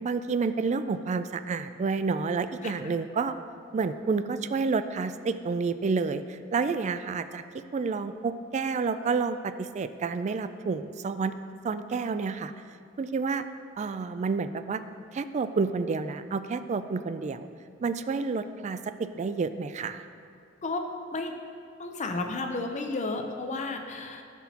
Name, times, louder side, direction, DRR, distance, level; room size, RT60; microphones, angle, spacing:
voice 1, 0.0-3.3 3.7-11.3 11.6-12.5 13.0-13.4 13.8-14.8 15.1-17.5 17.8-20.0, right 4 dB, 35° right, 11 dB, 0.3 m, -29 dB
voice 2, 20.6-21.3 21.8-24.2, left 2 dB, 35° left, 4 dB, 0.7 m, -33 dB
12.5 x 6.1 x 2.9 m, 2.4 s
head